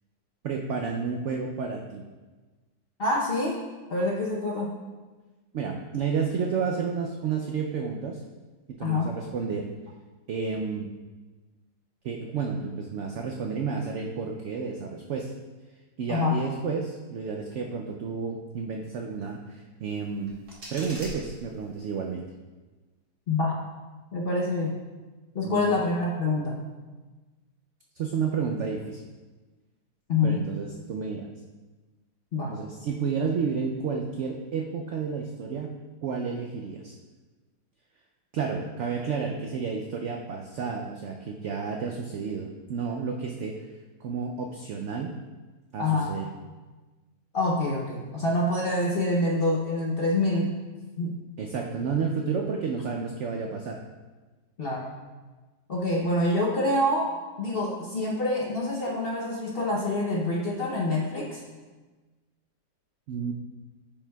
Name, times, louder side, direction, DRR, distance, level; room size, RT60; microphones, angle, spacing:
voice 1, 0.4-2.0 5.5-8.2 8.7-9.7 10.3-10.9 12.0-15.3 16.0-20.3 20.7-22.3 25.4-25.8 28.0-29.0 30.2-31.3 32.5-35.8 36.0-36.9 38.3-43.7 44.0-45.2 45.7-46.3 51.4-53.8 63.1-63.3, right 5 dB, 80° right, 2 dB, 0.6 m, -31 dB
voice 2, 3.0-3.6 3.9-4.7 8.8-9.1 16.1-16.4 23.3-23.6 24.1-24.8 25.3-26.6 30.1-30.4 32.3-32.5 45.8-46.1 47.3-50.5 51.0-51.1 54.6-54.9 55.7-61.4, left 2 dB, 50° left, -3 dB, 0.7 m, -26 dB
sound 1, 20.0-22.0, right 1 dB, 65° right, 2.4 m, -43 dB
9.2 x 5.4 x 2.2 m, 1.3 s
omnidirectional pair, 1.8 m